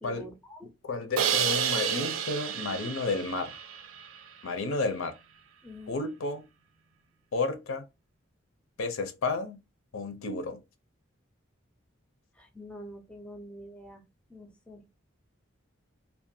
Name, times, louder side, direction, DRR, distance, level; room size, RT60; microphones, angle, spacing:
voice 1, 0.0-0.7 5.6-5.9 12.4-14.0 14.3-14.9, equal, 5° left, 0.4 m, -46 dB
voice 2, 0.8-3.6 4.4-5.1 5.9-6.4 7.3-7.8 8.8-9.6 9.9-10.6, left 3 dB, 85° left, 0.5 m, -31 dB
Crash cymbal, 1.2-4.2, right 9 dB, 80° right, 0.4 m, -30 dB
2.5 x 2.1 x 2.5 m
head